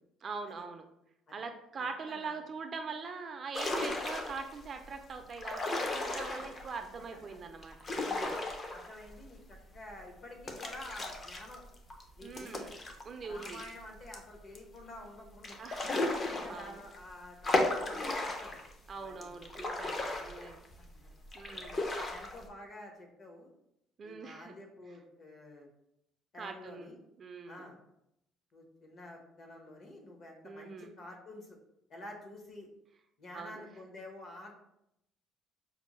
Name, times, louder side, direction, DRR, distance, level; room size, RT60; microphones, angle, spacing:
voice 1, 0.2-0.9 1.3-8.4 12.2-12.7 13.1-13.6 15.6-16.8 18.9-20.6 21.3-21.9 24.0-24.6 26.4-27.7 30.4-31.0 33.3-33.6, right 4 dB, 40° right, 6 dB, 0.4 m, -43 dB
sound 1, 3.5-4.6 5.3-6.7 7.6-9.2 9.5-9.6 10.5-13.7 14.1-14.2 14.5-14.6 15.4-17.0 17.4-18.7 19.2-20.8 21.3-22.4, left 2 dB, 35° left, 0.5 m, -35 dB
voice 2, 7.0-7.4 8.2-8.4 8.7-11.6 12.2-12.7 13.2-15.6 16.2-18.6 18.9-19.4 20.0-20.2 20.8-21.1 21.5-21.6 22.1-23.5 24.0-25.7 26.3-27.0 27.5-27.8 28.5-31.6 31.9-32.7 33.2-34.5, left 1 dB, 50° left, 2 dB, 0.9 m, -49 dB
5.1 x 2.0 x 3.0 m, 0.81 s
cardioid pair, 115°, 0 cm